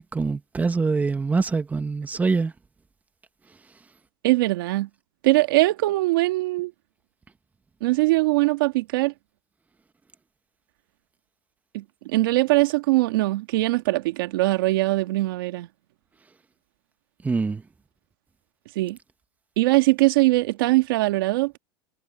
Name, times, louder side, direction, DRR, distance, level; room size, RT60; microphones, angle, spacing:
voice 1, 0.0-2.5 17.2-17.6, right 4 dB, 15° right, 1.4 m, -24 dB
voice 2, 4.2-4.9 5.2-6.7 7.8-9.1 11.7-15.7 18.7-19.0 19.6-21.6, right 19 dB, 75° right, 1.8 m, -21 dB
supercardioid pair, 125°, 12 cm